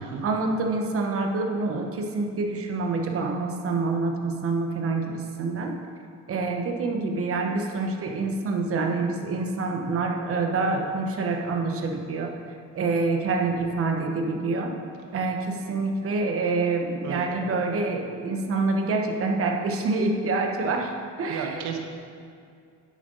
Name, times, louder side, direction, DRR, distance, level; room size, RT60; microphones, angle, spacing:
voice 1, 0.0-5.7 6.3-12.3 12.7-14.7 15.1-20.9 21.2-21.7, right 3 dB, 50° right, 2 dB, 1.1 m, -26 dB
voice 2, 21.3-21.8, right 7 dB, 75° right, 3 dB, 1.2 m, -32 dB
10.0 x 7.8 x 4.0 m, 2.3 s
cardioid pair, 125°, 30 cm